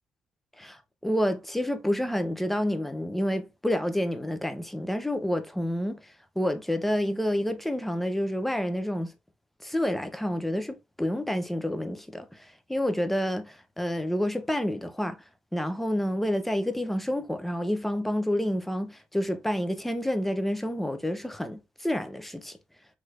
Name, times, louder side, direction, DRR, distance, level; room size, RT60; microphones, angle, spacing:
voice 1, 0.6-9.1 9.6-15.2 15.5-22.6, equal, 5° left, 0.5 m, -29 dB
3.1 x 3.0 x 2.4 m
supercardioid pair, 70°, 4 cm